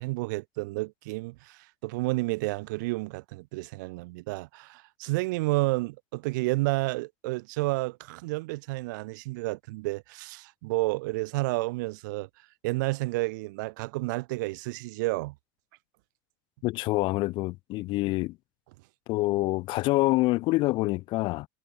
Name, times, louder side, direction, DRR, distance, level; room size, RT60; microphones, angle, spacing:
voice 1, 0.0-12.3 12.6-15.3, right 23 dB, 70° right, 4.6 m, -30 dB
voice 2, 16.6-18.4 19.1-21.5, left 20 dB, 50° left, 6.8 m, -26 dB
supercardioid pair, 120°, 10 cm